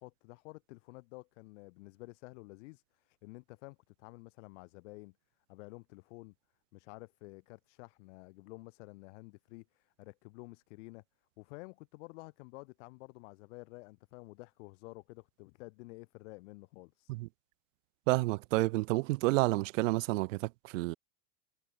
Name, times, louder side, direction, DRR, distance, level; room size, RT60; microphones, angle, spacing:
voice 1, 0.0-5.1 5.5-6.3 6.7-11.0 11.4-17.1, left 25 dB, 50° left, 2.6 m, -51 dB
voice 2, 18.1-21.0, right 22 dB, 50° right, 1.4 m, -30 dB
supercardioid pair, 175°, 48 cm